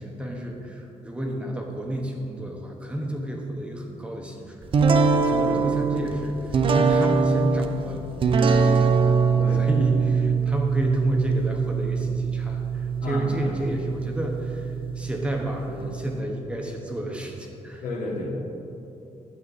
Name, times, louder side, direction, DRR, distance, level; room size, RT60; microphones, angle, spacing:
voice 1, 0.0-8.0 8.3-9.2 9.5-17.8, right 1 dB, 10° right, 0 dB, 0.9 m, -31 dB
sound 1, 4.7-16.2, right 5 dB, 45° right, 0.5 m, -23 dB
voice 2, 9.4-9.9 13.0-13.6 17.8-18.4, left 2 dB, 85° left, -2 dB, 1.8 m, -32 dB
11.5 x 8.0 x 4.1 m, 2.9 s
wide cardioid pair, 165°, 13 cm